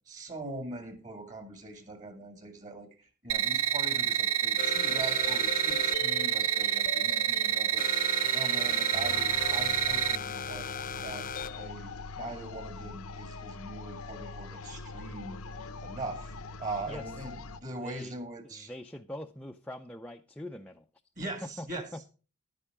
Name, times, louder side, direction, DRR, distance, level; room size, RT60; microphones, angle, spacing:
voice 1, 0.1-10.7 11.0-11.3 11.6-15.4 15.8-16.3 16.6-18.7 21.2-22.1, right 2 dB, 35° right, 7 dB, 2.1 m, -41 dB
sound 1, 3.3-10.1, right 10 dB, 75° right, 0.6 m, -28 dB
sound 2, 4.6-11.7, left 6 dB, 40° left, 0.7 m, -38 dB
sound 3, 8.9-17.6, left 4 dB, 85° left, 0.9 m, -42 dB
voice 2, 17.6-18.2 18.4-20.9 21.6-21.7, left 1 dB, 5° left, 3 dB, 0.5 m, -43 dB
11.0 x 10.0 x 3.6 m, 0.35 s
head